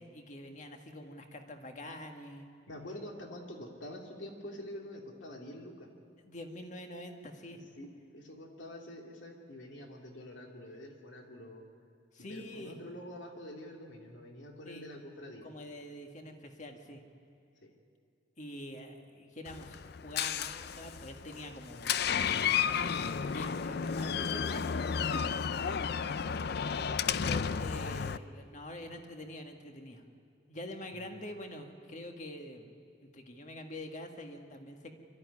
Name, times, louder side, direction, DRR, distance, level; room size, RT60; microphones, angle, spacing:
voice 1, 0.0-2.5 6.2-7.7 12.1-12.9 14.6-14.9 15.4-17.0 18.4-22.0 22.6-25.2 25.5-26.1 27.0-30.0 30.5-32.7 33.0-34.9, left 1 dB, 40° left, 4 dB, 1.8 m, -45 dB
voice 2, 2.7-5.9 7.8-11.6 12.2-15.5 17.6-17.7 25.9-26.4 30.9-31.1 31.5-31.6, left 1 dB, 80° left, 1 dB, 2.8 m, -46 dB
Door, 19.5-28.2, left 7 dB, 60° left, 0.5 m, -33 dB
24.0 x 13.0 x 9.6 m, 2.4 s
head